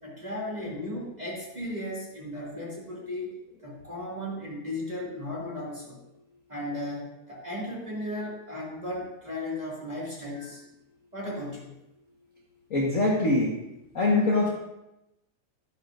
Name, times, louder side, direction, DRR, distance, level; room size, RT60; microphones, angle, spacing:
voice 1, 0.0-3.3 3.6-6.0 6.5-10.6 11.1-11.7, left 1 dB, 15° right, -5 dB, 2.2 m, -35 dB
voice 2, 12.7-13.5 13.9-14.5, left 2 dB, 45° left, -3 dB, 1.1 m, -23 dB
12.5 x 10.5 x 2.6 m, 0.90 s
omnidirectional pair, 3.5 m